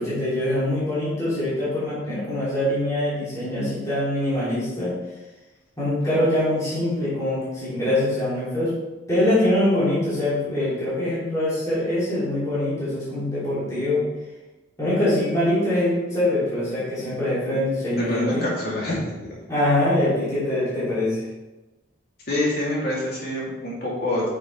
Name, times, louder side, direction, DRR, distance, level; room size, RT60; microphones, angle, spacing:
voice 1, 0.0-4.9 5.8-8.7 9.1-14.0 14.8-18.5 19.5-21.3, left 1 dB, 15° left, -11 dB, 3.1 m, -23 dB
voice 2, 18.0-19.2 22.3-24.3, left 1 dB, 50° left, -5 dB, 3.0 m, -26 dB
9.5 x 6.7 x 3.4 m, 1.1 s
head